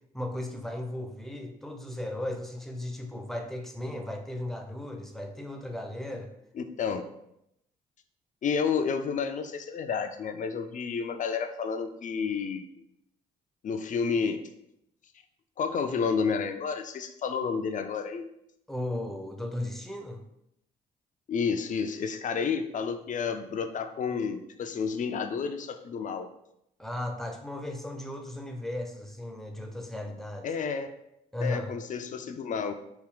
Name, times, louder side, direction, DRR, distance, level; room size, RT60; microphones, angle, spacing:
voice 1, 0.1-6.3 18.7-20.2 26.8-30.5 31.3-31.7, left 1 dB, ahead, 3 dB, 0.6 m, -36 dB
voice 2, 6.6-7.0 8.4-12.7 13.6-14.4 15.6-18.3 21.3-26.3 30.4-30.9 31.4-32.7, left 6 dB, 45° left, 8 dB, 0.5 m, -30 dB
3.4 x 2.3 x 3.6 m, 0.80 s
hypercardioid pair, 55°, 19 cm